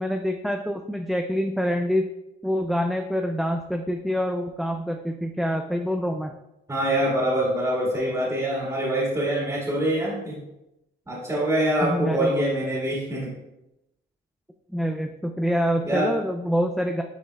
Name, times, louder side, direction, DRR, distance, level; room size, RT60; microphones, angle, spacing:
voice 1, 0.0-2.1 2.4-6.3 11.8-12.4 14.7-17.0, equal, ahead, 4 dB, 0.4 m, -26 dB
voice 2, 6.7-10.4 11.1-13.3 15.8-16.1, right 1 dB, 15° right, -6 dB, 2.1 m, -25 dB
9.2 x 4.3 x 2.4 m, 0.89 s
cardioid pair, 90°, 20 cm